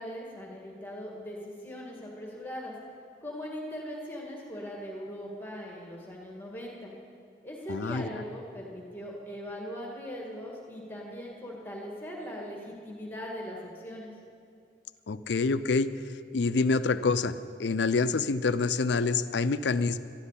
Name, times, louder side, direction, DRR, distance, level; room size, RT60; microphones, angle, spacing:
voice 1, 0.0-2.7 3.2-6.9 7.4-14.1, equal, 10° left, -2 dB, 1.8 m, -40 dB
voice 2, 7.7-8.2 15.1-15.9 16.3-20.0, left 4 dB, 85° left, 13 dB, 0.5 m, -27 dB
13.0 x 8.2 x 9.8 m, 2.4 s
head